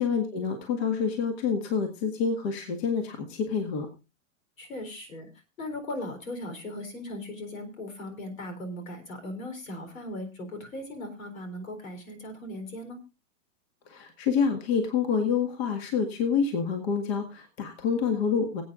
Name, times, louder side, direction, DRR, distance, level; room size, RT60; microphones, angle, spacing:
voice 1, 0.0-3.9 13.9-18.6, left 6 dB, 50° left, 6 dB, 1.9 m, -27 dB
voice 2, 4.6-5.3 5.6-13.0, left 1 dB, 85° left, 8 dB, 4.0 m, -38 dB
24.5 x 8.6 x 2.5 m, 0.28 s
hypercardioid pair, 145°, 39 cm